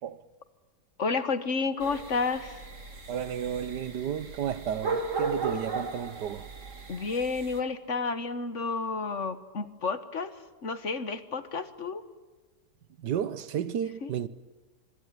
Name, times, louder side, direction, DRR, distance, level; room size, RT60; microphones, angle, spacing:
voice 1, 1.0-2.7 6.9-10.3 10.6-12.0 14.0-14.1, left 4 dB, 45° left, 1.6 m, -31 dB
sound 1, 1.8-7.6, right 4 dB, 45° right, 2.5 m, -36 dB
voice 2, 3.1-6.5 13.0-14.3, right 9 dB, 75° right, 1.7 m, -32 dB
26.0 x 22.5 x 9.3 m
omnidirectional pair, 1.8 m